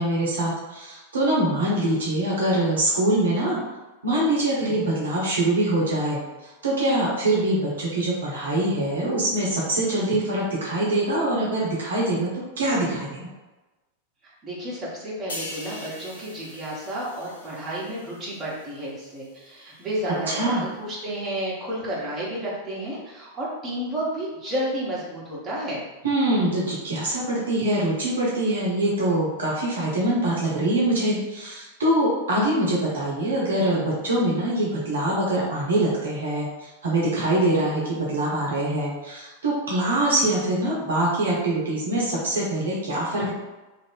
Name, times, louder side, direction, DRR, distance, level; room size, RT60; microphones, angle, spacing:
voice 1, 0.0-3.6 4.0-6.2 6.6-12.3 12.6-13.3 20.3-20.6 26.0-43.3, right 1 dB, 65° right, -5 dB, 0.7 m, -24 dB
voice 2, 14.2-25.8, right 1 dB, 25° right, -6 dB, 1.2 m, -31 dB
sound 1, 15.3-18.8 19.2-19.4, left 1 dB, 70° left, 0.7 m, -41 dB
2.6 x 2.5 x 3.4 m, 1.1 s
figure-of-eight pair, 90°, 0 cm